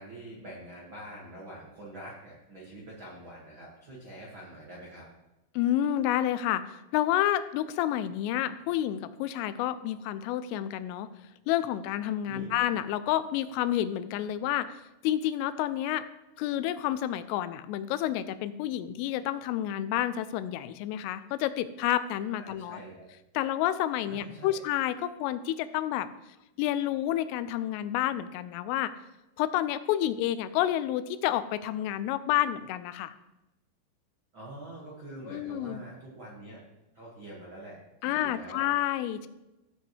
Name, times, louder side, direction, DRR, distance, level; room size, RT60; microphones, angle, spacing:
voice 1, 0.0-5.1 12.3-12.5 22.4-23.0 24.1-24.6 34.3-36.6 36.9-38.6, right 1 dB, 80° right, -5 dB, 1.1 m, -45 dB
voice 2, 5.6-11.1 11.5-16.0 16.4-22.8 23.4-26.1 26.6-28.9 29.4-33.1 35.3-35.8 38.0-39.3, left 12 dB, 85° left, 13 dB, 3.1 m, -29 dB
15.0 x 7.8 x 3.3 m, 0.94 s
omnidirectional pair, 5.7 m